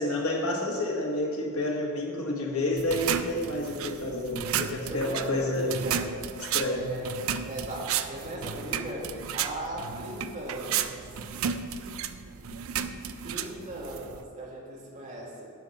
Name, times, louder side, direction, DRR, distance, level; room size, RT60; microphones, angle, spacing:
voice 1, 0.0-5.7 6.4-6.9 12.5-12.6, left 1 dB, 90° left, 0 dB, 1.6 m, -29 dB
sound 1, 2.8-14.2, right 8 dB, 75° right, 0.4 m, -33 dB
voice 2, 4.9-6.0 6.7-9.1 9.3-11.0 13.2-15.5, right 1 dB, 35° right, -3 dB, 1.9 m, -38 dB
10.5 x 5.4 x 6.4 m, 2.5 s
head